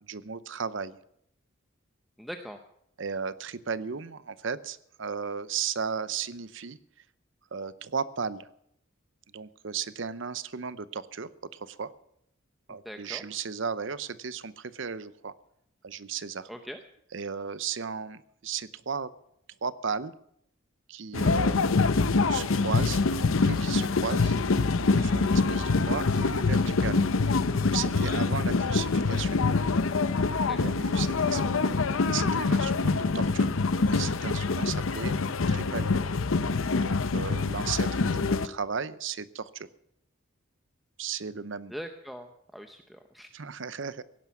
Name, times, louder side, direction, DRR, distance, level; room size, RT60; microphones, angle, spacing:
voice 1, 0.0-1.0 3.0-6.8 7.5-8.5 9.3-11.9 12.7-15.3 15.8-16.5 17.1-19.1 19.6-20.1 20.9-21.6 22.3-24.3 24.8-29.4 30.6-31.6 32.1-33.5 33.9-35.2 35.5-36.1 36.7-39.7 41.0-41.7 43.3-44.0, right 6 dB, 60° right, 16 dB, 0.7 m, -35 dB
voice 2, 2.2-2.6 12.7-13.2 16.5-16.8 30.3-30.8 41.7-43.3, equal, ahead, 5 dB, 0.7 m, -42 dB
sound 1, 21.1-38.5, left 3 dB, 75° left, 0.7 m, -25 dB
17.0 x 11.0 x 7.1 m, 0.76 s
head